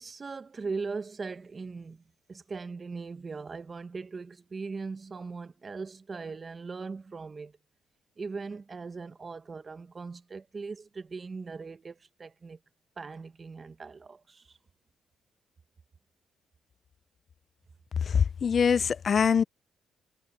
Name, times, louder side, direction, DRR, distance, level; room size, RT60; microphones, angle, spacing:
voice 1, 0.0-2.0 2.3-7.6 8.2-12.6 13.0-14.6, right 4 dB, 35° right, 1.0 m, -39 dB
voice 2, 18.0-19.4, left 7 dB, 45° left, 0.4 m, -23 dB
cardioid pair, 90°, 0 cm